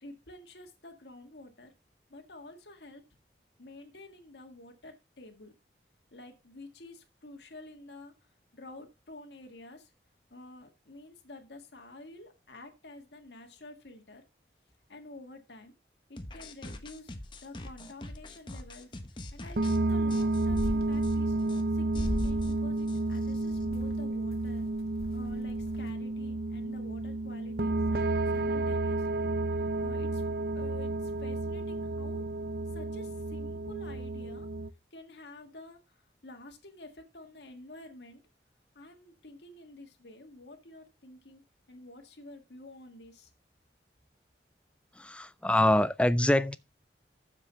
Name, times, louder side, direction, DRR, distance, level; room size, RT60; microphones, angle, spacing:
voice 1, 0.0-1.7 2.1-3.0 3.6-5.5 6.1-8.1 8.5-9.9 10.3-14.2 14.9-15.7 16.1-17.1 17.4-19.0 19.3-21.3 21.7-24.7 25.1-29.3 29.8-30.2 30.6-32.2 32.7-34.5 34.9-35.8 36.2-38.2 38.8-41.4 41.7-43.3, left 2 dB, 75° left, 1.9 m, -49 dB
sound 1, 16.2-19.8 20.1-20.7 21.0-21.1 21.4-21.6 21.9-23.6, left 2 dB, 25° left, 1.1 m, -45 dB
sound 2, 19.6-34.7, right 2 dB, 55° right, 0.6 m, -31 dB
sound 3, 19.9-20.1 20.4-21.5 21.9-22.5 22.9-23.9 24.4-24.5 24.7-25.9, left 1 dB, 55° left, 1.8 m, -36 dB
voice 2, 45.0-46.6, left 1 dB, 5° left, 0.4 m, -25 dB
7.4 x 6.8 x 5.6 m
head